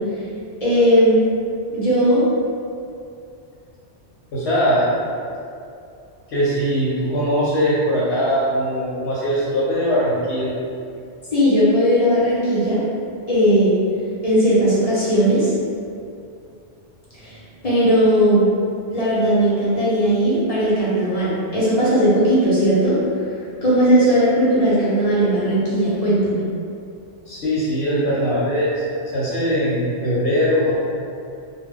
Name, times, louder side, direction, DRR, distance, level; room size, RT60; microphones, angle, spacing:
voice 1, 0.6-1.2 1.7-2.2 11.3-12.8 13.3-13.7 14.2-15.5 17.1-17.4 17.6-18.5 18.9-23.2 23.6-26.5, equal, 40° left, -11 dB, 0.8 m, -17 dB
voice 2, 4.3-4.9 6.3-10.5 27.3-28.8 29.1-30.7, equal, 80° left, -8 dB, 0.9 m, -20 dB
2.2 x 2.1 x 3.5 m, 2.4 s
omnidirectional pair, 1.1 m